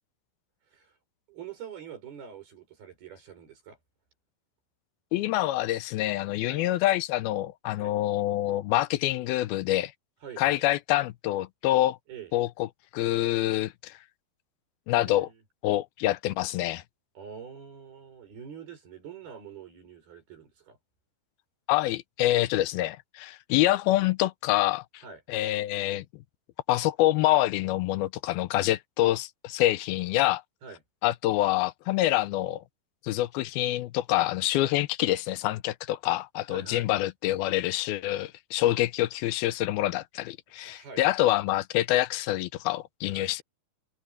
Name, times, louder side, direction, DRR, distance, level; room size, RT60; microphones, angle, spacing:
voice 1, 1.3-3.8 6.5-6.6 7.8-7.9 10.2-10.6 12.1-12.3 14.9-15.4 17.1-20.8 25.0-25.2 30.6-30.8 34.1-34.3 34.6-34.7 36.5-36.9 38.6-38.8 40.6-41.0 43.1-43.3, right 7 dB, 80° right, 8.3 m, -45 dB
voice 2, 5.1-9.9 10.4-12.0 12.3-12.7 12.9-14.0 14.9-15.3 15.6-16.8 21.7-25.0 25.3-26.1 26.7-30.4 31.0-32.6 33.0-43.4, left 15 dB, 80° left, 2.6 m, -26 dB
omnidirectional pair, 4.3 m